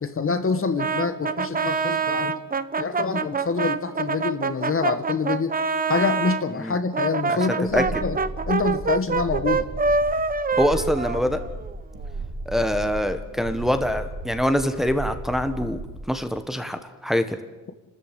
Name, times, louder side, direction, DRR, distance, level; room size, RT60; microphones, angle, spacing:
voice 1, 0.0-2.3 2.8-5.6 5.9-8.2 8.5-9.7, left 4 dB, 40° left, 10 dB, 1.4 m, -26 dB
Brass instrument, 0.8-6.4 6.9-11.7, right 4 dB, 25° right, 0.9 m, -26 dB
sound 1, 7.6-16.1, right 2 dB, 70° right, 4.6 m, -35 dB
voice 2, 10.6-11.4 12.5-15.8 16.1-17.4, equal, ahead, 8 dB, 1.4 m, -24 dB
29.5 x 13.5 x 8.8 m, 1.2 s
cardioid pair, 115°, 35 cm